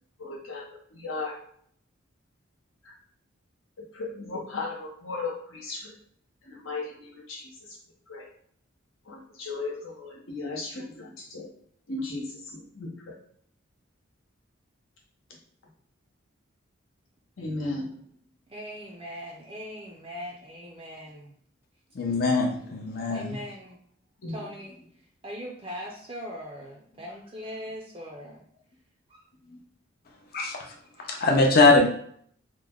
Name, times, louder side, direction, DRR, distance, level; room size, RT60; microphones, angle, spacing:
voice 1, 0.2-1.4 2.8-2.9 3.8-5.9 6.4-7.8 8.1-8.3 9.0-11.5 11.9-13.1 17.4-18.0 22.9-23.0 24.2-24.5 26.9-27.0 29.4-29.6, left 3 dB, 80° left, -2 dB, 1.0 m, -36 dB
voice 2, 18.5-21.4 23.0-23.8 24.3-24.8 25.2-28.4 29.1-29.2 30.9-31.1, equal, 25° right, -2 dB, 0.4 m, -40 dB
voice 3, 21.9-23.4 30.3-30.7 31.1-31.9, left 3 dB, 45° left, 1 dB, 0.6 m, -21 dB
3.1 x 2.1 x 3.6 m, 0.63 s
head